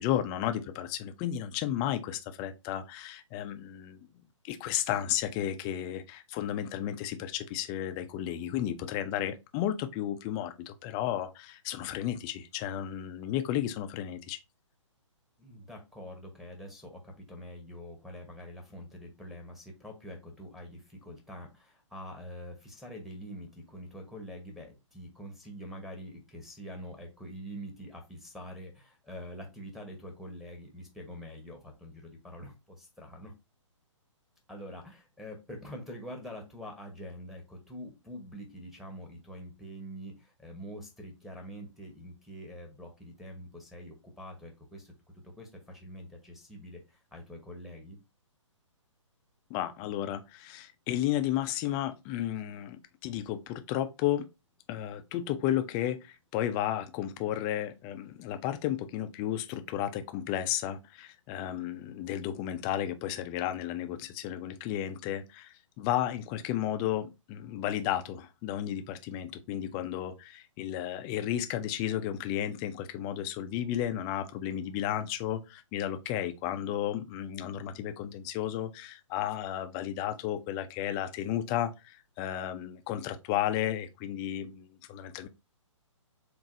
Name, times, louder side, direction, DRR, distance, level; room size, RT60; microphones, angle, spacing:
voice 1, 0.0-4.0 4.4-14.4 49.5-54.3 54.7-85.3, left 11 dB, 20° left, 0.5 m, -33 dB
voice 2, 15.4-33.3 34.5-44.9 45.2-48.0, equal, ahead, 1.1 m, -45 dB
7.1 x 2.6 x 2.6 m
figure-of-eight pair, 130°, 17 cm